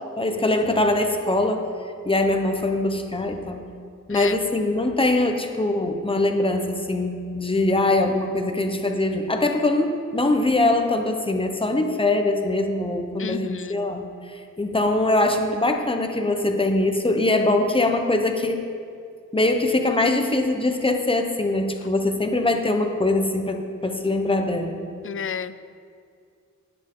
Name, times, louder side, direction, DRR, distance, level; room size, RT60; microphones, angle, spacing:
voice 1, 0.2-1.6 2.0-3.6 4.1-14.1 14.6-18.6 19.3-24.8, left 2 dB, 15° left, 4 dB, 1.1 m, -22 dB
voice 2, 13.2-13.8 25.0-25.6, left 7 dB, 45° left, 14 dB, 0.5 m, -31 dB
19.0 x 8.1 x 3.9 m, 2.3 s
wide cardioid pair, 120°, 30 cm